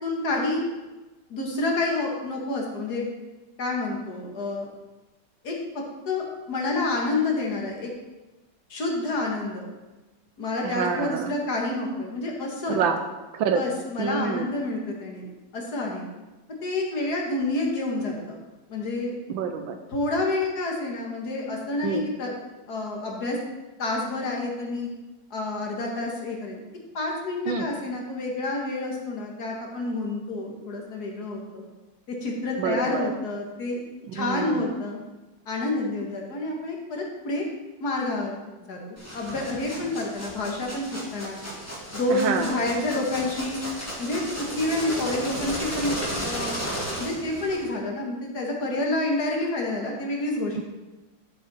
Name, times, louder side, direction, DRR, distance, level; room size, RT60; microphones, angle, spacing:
voice 1, 0.0-0.6 1.3-3.1 3.6-4.7 5.4-7.9 8.7-9.7 10.4-12.8 13.5-15.3 15.5-16.1 16.6-18.4 18.7-19.2 19.9-22.4 22.7-23.4 23.8-24.9 25.3-26.6 26.9-31.7 32.1-33.8 34.1-35.0 35.5-37.5 37.8-38.3 38.7-41.4 41.9-43.6 44.0-46.6 47.0-50.6, left 2 dB, 55° left, 0 dB, 2.1 m, -28 dB
voice 2, 10.6-11.3 12.7-13.0 13.3-13.6 14.0-14.5 19.3-19.8 21.8-22.1 27.5-27.7 32.6-33.1 34.0-34.7 42.1-42.6 50.5-50.6, right 6 dB, 90° right, 7 dB, 1.5 m, -27 dB
sound 1, 39.0-47.7, equal, 10° left, 2.3 m, -34 dB
12.0 x 7.0 x 4.2 m, 1.1 s
omnidirectional pair, 2.1 m